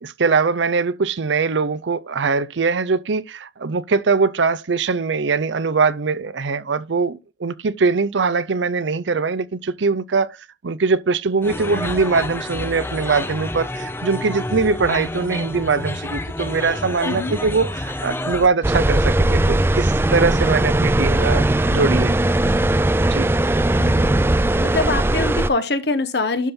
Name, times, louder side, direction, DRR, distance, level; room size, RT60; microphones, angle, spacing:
voice 1, 0.0-10.4 10.6-22.2 23.0-23.3, right 4 dB, 85° right, 0.6 m, -22 dB
sound 1, 11.4-18.5, left 1 dB, 15° left, 0.7 m, -29 dB
voice 2, 17.0-17.3 23.8-24.2 24.6-26.5, left 3 dB, 65° left, 1.1 m, -24 dB
sound 2, 18.6-25.5, right 1 dB, 15° right, 0.3 m, -18 dB
12.0 x 4.4 x 3.7 m
head